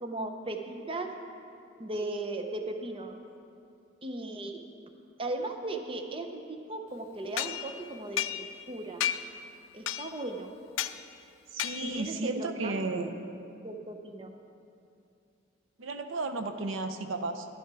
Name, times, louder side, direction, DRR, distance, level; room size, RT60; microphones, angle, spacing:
voice 1, 0.0-1.1 1.8-3.2 4.0-4.6 5.2-9.0 9.7-10.5 11.8-13.1 13.6-14.3, right 2 dB, 30° right, 5 dB, 0.7 m, -37 dB
sound 1, 7.4-8.7 9.0-9.4 9.9-10.3 10.8-11.0 11.6-12.1, left 11 dB, 80° left, 0.4 m, -33 dB
voice 2, 11.5-13.1 15.8-17.5, right 3 dB, 85° right, 7 dB, 0.7 m, -33 dB
11.5 x 10.5 x 4.7 m, 2.6 s
head